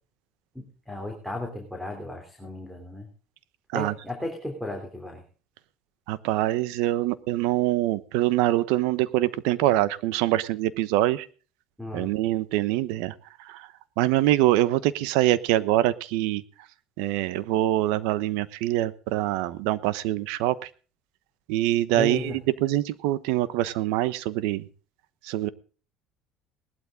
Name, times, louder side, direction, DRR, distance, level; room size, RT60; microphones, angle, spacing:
voice 1, 0.5-3.1 3.7-5.2 11.8-12.1 21.9-22.4, left 1 dB, ahead, 3 dB, 3.3 m, -35 dB
voice 2, 6.1-11.2 11.9-13.1 14.0-16.4 17.0-20.5 21.5-24.6 25.3-25.5, right 15 dB, 85° right, 16 dB, 1.0 m, -24 dB
19.0 x 12.5 x 3.7 m, 0.38 s
cardioid pair, 125°, 0 cm